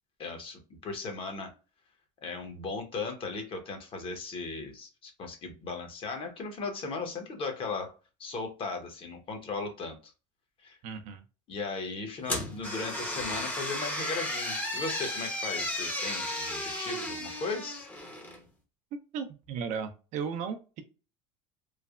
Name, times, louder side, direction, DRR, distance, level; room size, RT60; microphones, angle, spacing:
voice 1, 0.2-1.5 2.2-7.9 8.2-10.1 10.6-10.8 11.5-17.9, left 4 dB, 35° left, 0.8 m, -37 dB
voice 2, 10.8-11.2 19.1-20.8, right 6 dB, 55° right, 0.5 m, -35 dB
sound 1, 12.2-18.4, left 1 dB, 10° left, 0.7 m, -34 dB
3.2 x 2.0 x 2.3 m
supercardioid pair, 120°, 15 cm